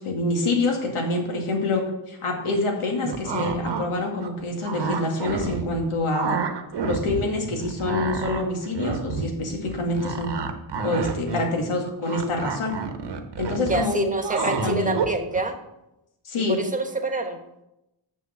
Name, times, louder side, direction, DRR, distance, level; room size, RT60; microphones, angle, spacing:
voice 1, 0.0-6.4 6.8-10.3 10.8-12.7 13.4-14.0 14.6-15.0 16.2-16.6, left 2 dB, 85° left, 1 dB, 2.2 m, -26 dB
sound 1, 3.0-3.8 4.2-5.8 6.1-7.2 7.5-15.4, right 5 dB, 55° right, 1.1 m, -29 dB
voice 2, 13.6-15.5 16.4-17.4, right 2 dB, 15° right, 5 dB, 1.2 m, -26 dB
6.7 x 6.4 x 6.9 m, 0.90 s
wide cardioid pair, 110°, 49 cm